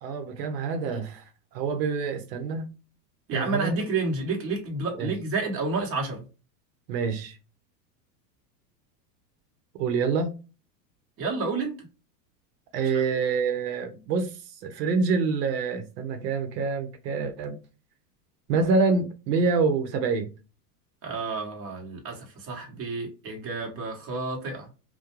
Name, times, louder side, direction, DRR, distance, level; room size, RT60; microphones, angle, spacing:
voice 1, 0.0-1.2 1.5-2.7 3.3-3.8 5.0-5.1 6.9-7.4 9.8-10.3 12.7-14.3 14.6-17.6 18.5-20.3, right 4 dB, 85° right, 0.8 m, -26 dB
voice 2, 3.3-6.2 11.2-11.9 12.9-13.0 21.0-24.7, right 3 dB, 30° right, 1.0 m, -30 dB
2.4 x 2.2 x 2.9 m
supercardioid pair, 135°, 48 cm